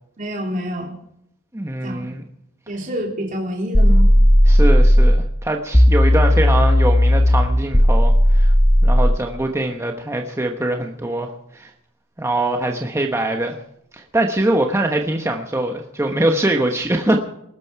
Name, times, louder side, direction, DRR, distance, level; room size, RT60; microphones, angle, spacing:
voice 1, 0.2-0.9 1.8-2.1 2.7-4.1, equal, 35° right, -1 dB, 3.3 m, -27 dB
voice 2, 1.5-2.2 4.5-8.5 8.8-11.7 12.2-13.6 13.9-17.2, right 1 dB, 10° right, 3 dB, 1.1 m, -23 dB
sound 1, 3.7-5.2 5.7-9.2, equal, 15° left, 1.3 m, -13 dB
21.0 x 12.5 x 4.7 m, 0.75 s
head